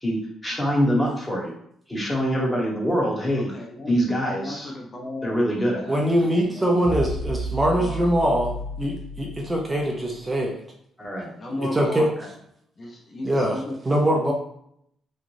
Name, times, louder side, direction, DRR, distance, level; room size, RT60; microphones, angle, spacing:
voice 1, 0.0-1.5 1.9-3.5 3.9-4.7 5.2-5.9 11.0-11.3, equal, 10° left, -3 dB, 1.2 m, -24 dB
voice 2, 3.4-3.9 4.3-5.4 5.8-6.7 7.7-8.2 11.4-12.3 12.8-13.8 14.2-14.3, left 1 dB, 35° left, -1 dB, 0.6 m, -35 dB
voice 3, 5.9-10.5 11.6-12.1 13.2-14.3, equal, 20° right, -1 dB, 0.7 m, -23 dB
sound 1, 6.8-10.2, right 1 dB, 90° left, 0.8 m, -32 dB
3.2 x 2.4 x 2.6 m, 0.68 s
cardioid pair, 90°, 0 cm